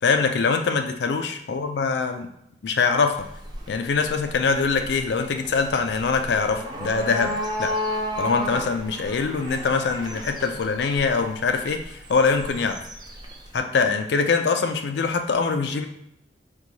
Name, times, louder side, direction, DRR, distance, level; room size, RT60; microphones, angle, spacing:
voice 1, 0.0-2.3 2.6-3.2 3.7-7.7 8.2-12.8 13.5-15.9, left 4 dB, 70° left, 6 dB, 0.4 m, -23 dB
sound 1, 3.1-13.6, left 1 dB, 25° right, 0.6 m, -33 dB
4.5 x 2.3 x 3.9 m, 0.77 s
head